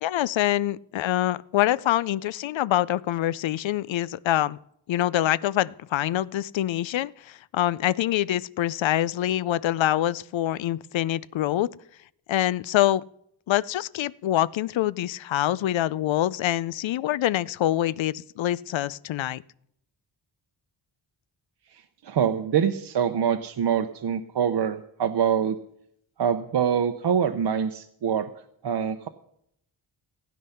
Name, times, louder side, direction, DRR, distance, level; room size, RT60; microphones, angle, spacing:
voice 1, 0.0-4.6 4.9-11.7 12.3-13.0 13.5-19.4, left 13 dB, 75° left, 20 dB, 0.5 m, -25 dB
voice 2, 21.7-25.6 26.2-28.3 28.6-29.1, right 8 dB, 60° right, 6 dB, 0.8 m, -25 dB
16.0 x 9.5 x 5.7 m, 0.72 s
wide cardioid pair, 105°, 46 cm